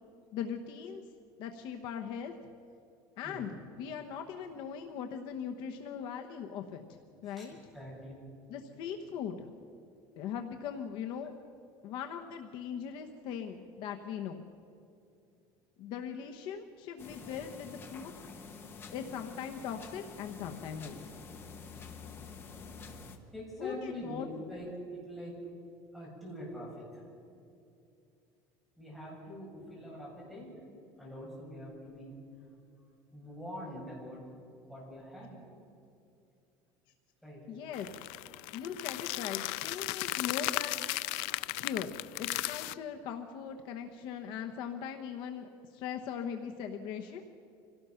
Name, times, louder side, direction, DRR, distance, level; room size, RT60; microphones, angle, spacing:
voice 1, 0.3-1.0 1.4-2.3 3.2-7.6 8.5-9.5 10.2-11.3 11.8-14.4 15.8-18.1 18.9-21.1 23.6-24.3 37.5-37.9 38.5-40.8 41.6-47.2, left 8 dB, 55° left, 5 dB, 1.1 m, -40 dB
voice 2, 7.7-8.2 23.3-25.4 25.9-27.0 28.8-30.5 31.0-32.2 33.1-34.2 34.7-35.4 37.2-37.4, equal, ahead, -6 dB, 6.3 m, -44 dB
sound 1, 17.0-23.2, left 5 dB, 25° left, 1.3 m, -48 dB
sound 2, 37.7-42.7, left 20 dB, 70° left, 0.4 m, -36 dB
26.0 x 17.5 x 5.8 m, 2.6 s
cardioid pair, 175°, 10 cm